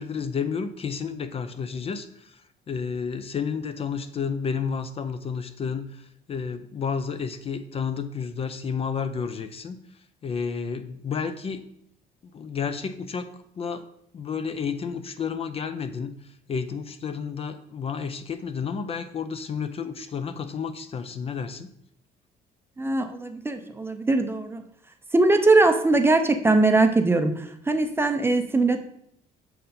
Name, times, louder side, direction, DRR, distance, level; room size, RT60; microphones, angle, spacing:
voice 1, 0.0-9.8 10.2-11.7 12.3-13.3 13.6-13.8 14.1-21.7, left 6 dB, 35° left, 10 dB, 0.5 m, -31 dB
voice 2, 22.8-24.6 25.1-28.8, right 2 dB, 15° right, 6 dB, 0.5 m, -21 dB
6.6 x 4.0 x 4.2 m, 0.71 s
cardioid pair, 110°, 17 cm